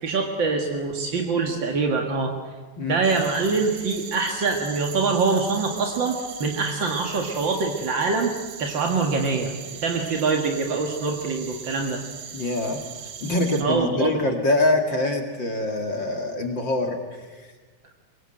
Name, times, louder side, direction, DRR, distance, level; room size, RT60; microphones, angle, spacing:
voice 1, 0.0-2.3 2.8-8.3 8.6-9.5 9.8-12.0 13.6-14.1, right 4 dB, 45° right, 3 dB, 1.5 m, -24 dB
Selva Pucallpa, 3.0-13.6, right 8 dB, 65° right, 3.7 m, -39 dB
voice 2, 12.3-12.8 13.2-17.5, left 2 dB, 35° left, 4 dB, 2.1 m, -24 dB
24.0 x 23.5 x 7.8 m, 1.3 s
omnidirectional pair, 4.5 m